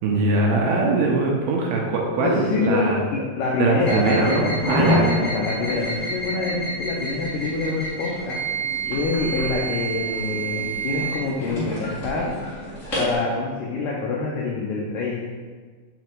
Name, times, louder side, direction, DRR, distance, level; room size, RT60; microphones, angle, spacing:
voice 1, 0.0-3.0 3.6-5.1, right 3 dB, 75° right, -1 dB, 2.5 m, -22 dB
voice 2, 2.2-4.6 4.9-8.4 8.9-12.3 13.0-15.2, left 3 dB, 85° left, -3 dB, 1.9 m, -26 dB
sound 1, 3.8-13.1, right 1 dB, 45° left, 1.0 m, -27 dB
5.9 x 5.1 x 4.5 m, 1.5 s
omnidirectional pair, 4.7 m